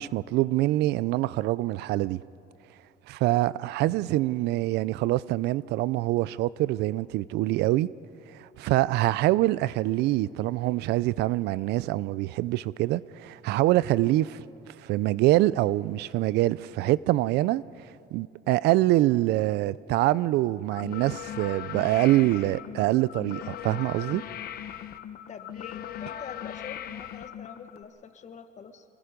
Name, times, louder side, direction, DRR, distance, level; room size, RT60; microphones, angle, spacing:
voice 1, 0.0-2.2 3.1-7.9 8.4-14.4 14.8-17.6 18.1-24.2, right 16 dB, 85° right, 0.5 m, -25 dB
sound 1, 20.7-27.8, left 10 dB, 65° left, 0.9 m, -39 dB
voice 2, 25.3-28.8, left 6 dB, 45° left, 1.5 m, -44 dB
26.0 x 22.0 x 5.2 m
cardioid pair, 110°, 17 cm